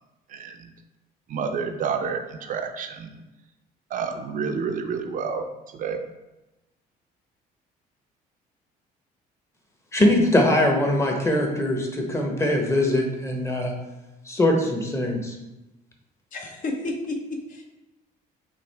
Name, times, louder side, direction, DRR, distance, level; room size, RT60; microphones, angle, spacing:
voice 1, 1.3-3.1 3.9-5.4 5.7-6.0, right 6 dB, 50° right, 6 dB, 0.5 m, -29 dB
voice 2, 9.9-13.7 14.3-15.4, left 1 dB, 15° left, 1 dB, 0.9 m, -22 dB
voice 3, 16.3-17.7, left 2 dB, 50° left, 2 dB, 0.9 m, -31 dB
6.0 x 2.5 x 3.4 m, 1.0 s
cardioid pair, 110°, 17 cm